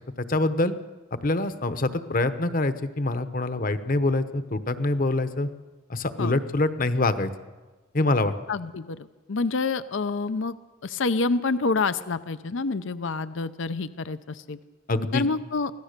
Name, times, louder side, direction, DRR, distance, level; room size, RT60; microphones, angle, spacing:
voice 1, 0.2-0.7 1.1-5.5 5.9-7.3 7.9-8.3 14.9-15.2, left 2 dB, 45° left, 11 dB, 1.0 m, -25 dB
voice 2, 8.5-10.5 10.8-14.6 15.1-15.7, left 3 dB, 70° left, 13 dB, 0.6 m, -27 dB
24.0 x 17.0 x 6.7 m, 1.3 s
head